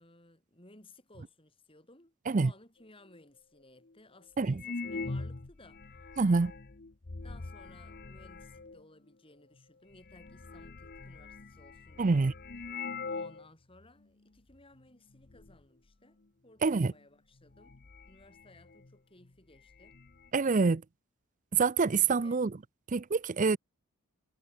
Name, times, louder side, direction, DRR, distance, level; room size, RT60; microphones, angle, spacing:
voice 1, 0.0-6.0 7.2-12.2 13.1-17.8 18.1-20.0 22.2-22.4, left 2 dB, 25° left, 8.0 m, -59 dB
sound 1, 3.1-3.2 3.9-4.0 4.5-8.8 9.6-9.7 9.9-13.5 13.8-13.9 14.5-14.8 15.1-15.6 16.9-17.0 17.4-18.9 19.2-19.3 19.6-20.3, left 3 dB, 45° left, 0.9 m, -43 dB
voice 2, 6.2-6.5 12.0-12.3 16.6-16.9 20.3-20.8 21.5-22.5 22.9-23.6, right 4 dB, 35° right, 0.5 m, -26 dB
head